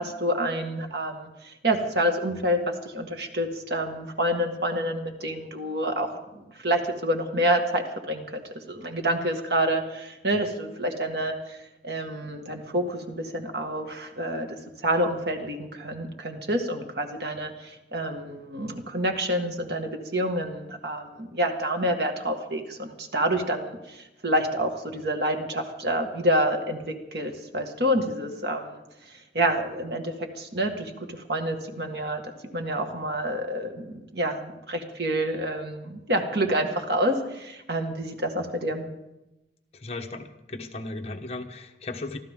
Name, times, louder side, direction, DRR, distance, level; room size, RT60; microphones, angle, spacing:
voice 1, 0.0-28.8 29.3-32.2 32.5-38.9, right 1 dB, 75° right, 3 dB, 2.1 m, -28 dB
voice 2, 39.7-42.2, left 2 dB, 35° left, 3 dB, 1.3 m, -36 dB
24.5 x 14.5 x 3.8 m, 0.96 s
head